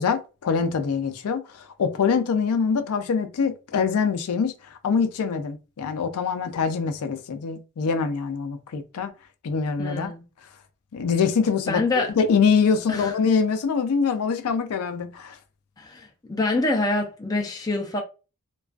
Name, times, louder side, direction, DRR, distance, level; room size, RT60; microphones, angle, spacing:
voice 1, 0.0-9.1 9.4-10.1 10.9-15.4, left 5 dB, 85° left, 0.4 m, -24 dB
voice 2, 9.8-10.2 11.7-12.1 12.9-13.1 15.8-18.0, left 2 dB, 15° left, 0.4 m, -25 dB
2.3 x 2.3 x 2.3 m
head